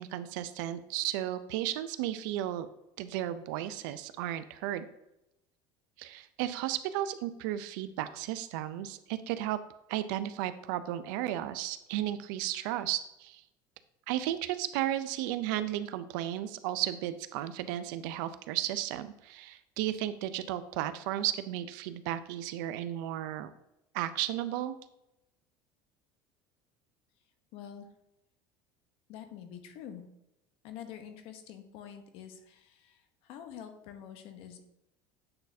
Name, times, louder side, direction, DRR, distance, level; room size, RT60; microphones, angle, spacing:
voice 1, 0.0-2.7 3.0-4.9 6.0-9.6 9.9-13.4 14.1-23.5 23.9-24.7, right 13 dB, 80° right, 12 dB, 0.5 m, -34 dB
voice 2, 27.5-27.9 29.1-30.0 30.6-34.6, left 9 dB, 65° left, 7 dB, 0.9 m, -46 dB
8.7 x 4.0 x 2.7 m, 0.85 s
supercardioid pair, 115°, 10 cm